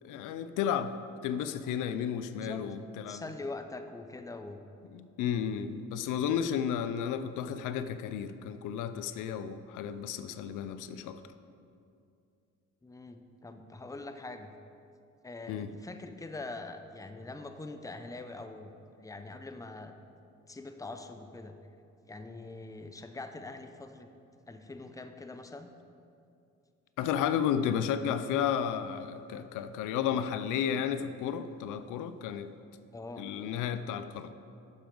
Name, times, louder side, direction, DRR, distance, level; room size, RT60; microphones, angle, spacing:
voice 1, 0.0-0.9 1.2-3.2 4.9-11.2 15.5-15.7 27.0-32.5 33.2-34.3, left 8 dB, 90° left, 11 dB, 0.5 m, -32 dB
voice 2, 3.1-4.6 12.8-14.5 15.2-19.9 20.5-21.6 22.1-24.1 24.5-25.7 32.9-33.3, left 2 dB, 10° left, 7 dB, 0.6 m, -43 dB
11.5 x 7.0 x 3.8 m, 2.5 s
cardioid pair, 90°, 30 cm